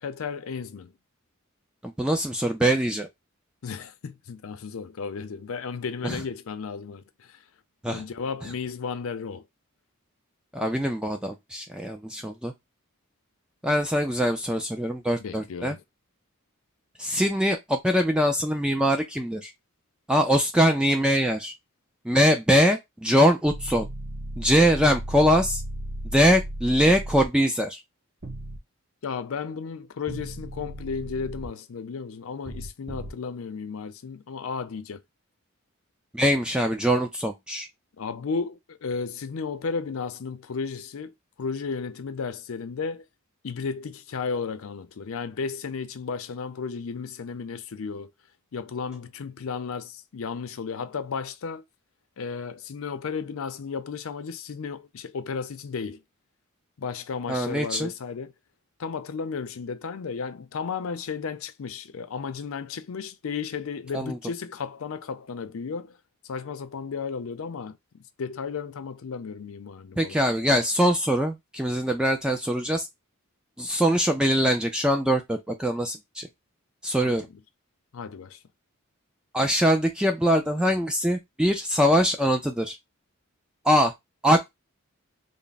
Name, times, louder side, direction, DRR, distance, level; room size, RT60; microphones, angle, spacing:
voice 1, 0.0-0.9 3.6-7.4 7.9-9.5 15.2-15.8 29.0-35.0 38.0-43.0 43.4-48.1 48.5-51.6 52.2-56.0 56.8-58.3 58.8-66.0 66.2-70.2 77.0-77.2 77.9-78.4, left 5 dB, 70° left, 0.5 m, -34 dB
voice 2, 1.8-3.1 6.0-6.2 7.8-8.0 10.5-12.5 13.6-15.7 17.0-19.5 20.1-21.5 22.1-23.9 24.4-25.6 26.1-27.8 36.1-37.7 57.3-57.9 63.9-64.2 70.0-72.9 73.6-76.3 76.8-77.3 79.3-82.8 83.6-83.9 84.2-84.5, equal, 5° right, 0.3 m, -23 dB
sound 1, 23.4-27.3 28.2-28.6 30.1-31.5 32.5-33.1, right 1 dB, 40° right, 0.7 m, -35 dB
3.3 x 2.0 x 3.9 m
head